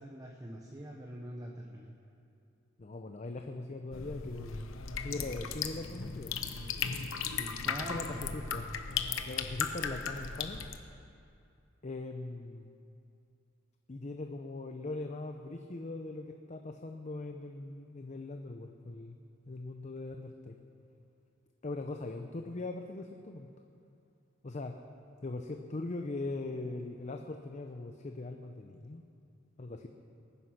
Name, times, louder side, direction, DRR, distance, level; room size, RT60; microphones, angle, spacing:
voice 1, 0.0-1.9 7.3-8.3, equal, 20° right, 0 dB, 1.0 m, -44 dB
voice 2, 2.8-4.6 5.0-6.4 7.9-8.7 9.2-10.6 11.8-12.7 13.9-19.2 19.5-20.6 21.6-23.5 24.4-24.8 25.2-29.0 29.6-29.9, left 2 dB, 35° left, 5 dB, 0.7 m, -40 dB
sound 1, 3.9-10.8, left 6 dB, 85° left, 0.9 m, -36 dB
21.5 x 9.8 x 5.8 m, 2.5 s
head